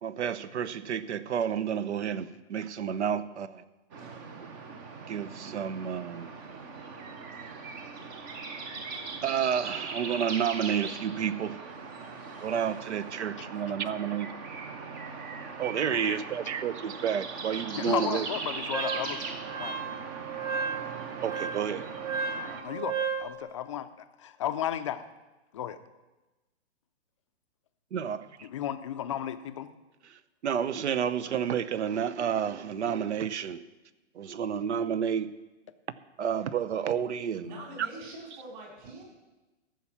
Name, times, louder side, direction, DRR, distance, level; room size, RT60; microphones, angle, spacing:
voice 1, 0.0-3.6 4.0-4.2 5.1-6.3 9.2-11.6 12.4-14.3 15.6-18.3 21.2-21.9 27.9-28.5 30.1-33.6 34.1-35.3 36.2-37.5 37.8-37.9, right 8 dB, 75° right, 16 dB, 0.8 m, -30 dB
sound 1, 3.9-22.6, right 4 dB, 20° right, 0.5 m, -40 dB
voice 2, 15.9-16.2 17.7-19.2 19.5-20.0 22.6-25.1 25.5-25.8 28.4-29.7, left 10 dB, 30° left, 10 dB, 0.4 m, -34 dB
Wind instrument woodwind instrument, 18.7-23.3, right 5 dB, 90° right, 1.9 m, -34 dB
voice 3, 37.4-39.0, right 2 dB, 40° right, -1 dB, 4.4 m, -43 dB
14.0 x 5.8 x 7.2 m, 1.1 s
hypercardioid pair, 155°, 35 cm